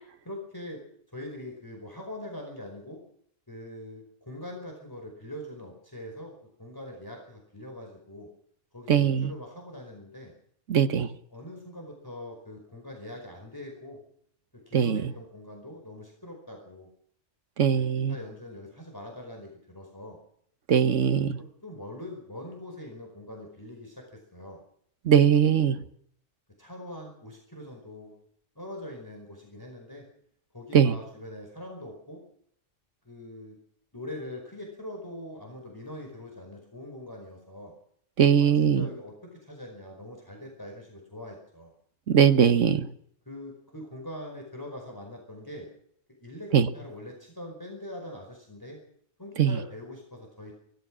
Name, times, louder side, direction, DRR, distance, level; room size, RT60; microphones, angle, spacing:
voice 1, 0.2-0.8 1.1-3.0 3.5-6.3 6.6-8.3 8.7-10.3 11.3-14.0 14.7-16.9 17.7-20.2 21.4-24.6 26.6-28.2 28.5-30.0 30.5-32.2 33.0-33.6 33.9-37.7 38.4-41.7 43.2-45.7 46.2-48.8 49.2-50.5, left 1 dB, 15° left, 1 dB, 4.8 m, -42 dB
voice 2, 8.9-9.3 10.7-11.1 14.7-15.0 17.6-18.1 20.7-21.4 25.0-25.8 30.7-30.9 38.2-38.8 42.1-42.9 46.5-46.7 49.4-49.6, right 8 dB, 85° right, 11 dB, 1.5 m, -20 dB
24.0 x 17.5 x 6.3 m, 0.67 s
omnidirectional pair, 1.2 m